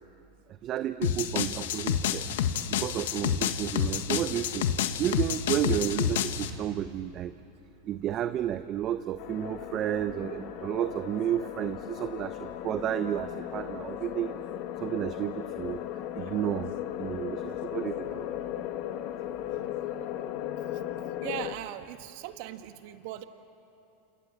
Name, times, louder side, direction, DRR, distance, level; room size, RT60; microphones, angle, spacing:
voice 1, 0.6-4.7 5.0-7.3 7.8-14.4 14.8-15.8 16.2-16.7 17.0-18.3, right 11 dB, 40° right, 11 dB, 0.8 m, -32 dB
sound 1, 1.0-6.5, left 9 dB, 75° left, 1.5 m, -29 dB
sound 2, 9.2-21.5, left 12 dB, 55° left, 1.6 m, -37 dB
voice 2, 21.2-23.2, right 14 dB, 60° right, 8 dB, 1.6 m, -39 dB
28.5 x 28.0 x 7.5 m, 2.7 s
hypercardioid pair, 115°, 0 cm